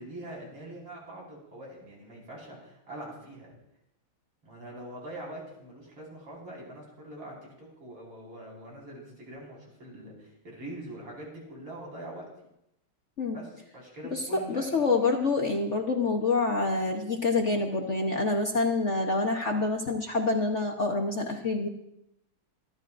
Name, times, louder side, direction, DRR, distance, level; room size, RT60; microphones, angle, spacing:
voice 1, 0.0-3.5 4.4-12.2 13.3-14.6, right 1 dB, 85° right, -3 dB, 5.9 m, -43 dB
voice 2, 14.1-21.7, left 3 dB, 45° left, 1 dB, 1.0 m, -27 dB
26.0 x 12.5 x 2.6 m, 0.80 s
omnidirectional pair, 2.3 m